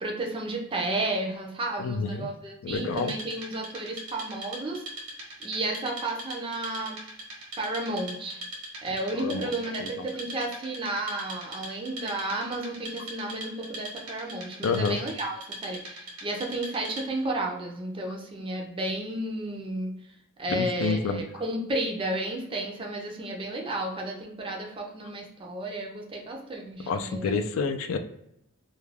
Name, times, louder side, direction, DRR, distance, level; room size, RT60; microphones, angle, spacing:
voice 1, 0.0-4.8 5.4-7.0 7.6-8.4 8.8-19.9 20.4-27.4, right 2 dB, 25° right, 1 dB, 0.4 m, -32 dB
voice 2, 1.8-2.3 2.6-3.1 9.2-9.5 9.8-10.1 14.6-15.0 20.5-21.2 26.9-28.0, left 5 dB, 65° left, 8 dB, 0.3 m, -28 dB
Wood, 2.8-17.3, right 1 dB, 85° right, 1.0 m, -41 dB
2.3 x 2.1 x 3.1 m, 0.80 s
head